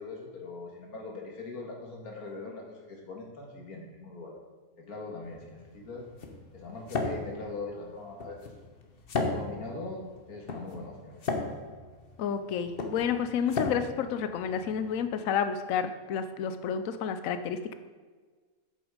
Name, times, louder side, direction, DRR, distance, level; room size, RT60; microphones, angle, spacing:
voice 1, 0.0-4.4 4.8-6.1 6.5-8.5 9.3-11.2, left 3 dB, 85° left, 0 dB, 2.1 m, -41 dB
sound 1, 5.2-15.1, left 3 dB, 45° left, 1.1 m, -36 dB
voice 2, 12.2-17.7, left 7 dB, 70° left, 9 dB, 1.1 m, -30 dB
8.2 x 7.2 x 5.0 m, 1.4 s
omnidirectional pair, 1.5 m